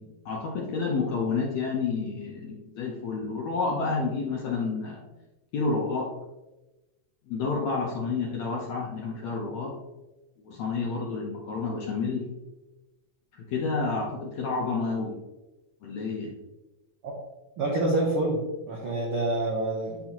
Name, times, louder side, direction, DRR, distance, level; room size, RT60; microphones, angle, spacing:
voice 1, 0.0-5.0 5.5-6.1 7.3-9.7 10.4-12.3 13.5-15.2 15.8-16.3, left 4 dB, 70° left, -3 dB, 1.7 m, -29 dB
voice 2, 17.6-20.1, right 2 dB, 75° right, -3 dB, 1.2 m, -27 dB
9.3 x 4.0 x 2.9 m, 1.1 s
omnidirectional pair, 4.1 m